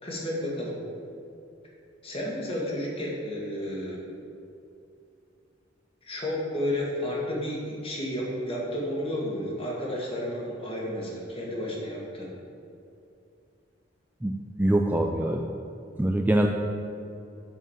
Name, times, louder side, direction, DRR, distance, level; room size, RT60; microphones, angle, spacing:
voice 1, 0.0-0.8 2.0-4.0 6.1-12.3, left 1 dB, 30° left, -4 dB, 2.0 m, -32 dB
voice 2, 14.6-15.4 16.0-16.5, right 1 dB, 10° right, 2 dB, 0.3 m, -23 dB
8.0 x 4.9 x 7.3 m, 2.6 s
head